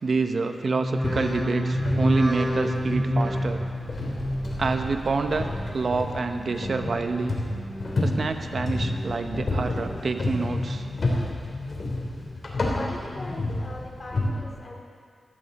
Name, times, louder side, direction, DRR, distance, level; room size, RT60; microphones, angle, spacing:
voice 1, 0.0-3.6 4.6-7.4 8.0-10.8, right 4 dB, 60° right, 6 dB, 0.8 m, -27 dB
sound 1, 0.7-6.0 6.4-7.0 7.4-8.1 8.5-9.2 9.6-10.3 10.8-11.3 11.9-12.0, equal, 10° right, 4.0 m, -30 dB
sound 2, 1.0-14.3, left 2 dB, 60° left, 3.4 m, -30 dB
voice 2, 12.7-14.8, left 2 dB, 40° left, -1 dB, 3.0 m, -40 dB
16.5 x 15.0 x 4.2 m, 2.1 s
wide cardioid pair, 80°, 0 cm